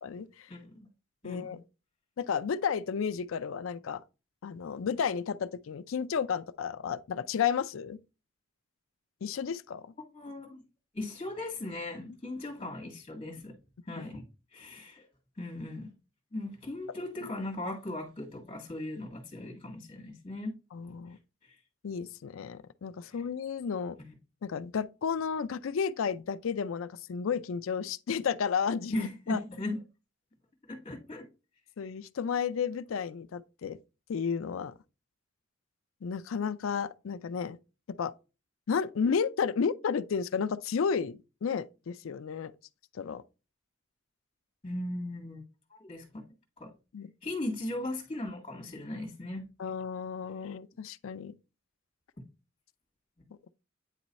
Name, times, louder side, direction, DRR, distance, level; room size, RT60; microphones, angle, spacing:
voice 1, 0.0-0.5 1.2-1.6 2.2-4.0 4.4-8.0 9.2-9.8 14.0-14.1 20.7-21.2 21.8-24.0 24.4-29.4 31.8-33.8 34.1-34.7 36.0-37.6 38.0-38.1 38.7-42.5 42.9-43.2 46.9-47.1 49.6-51.3, left 6 dB, 80° left, 0.4 m, -32 dB
voice 2, 10.1-10.6 10.9-13.6 13.9-15.0 15.4-15.9 16.3-20.5 21.4-21.6 23.0-23.2 24.0-24.1 28.9-29.8 30.7-31.3 44.6-45.4 45.7-46.2 46.6-46.7 47.2-49.7 50.4-50.6, left 1 dB, 25° left, 1.8 m, -38 dB
9.2 x 3.1 x 4.0 m
head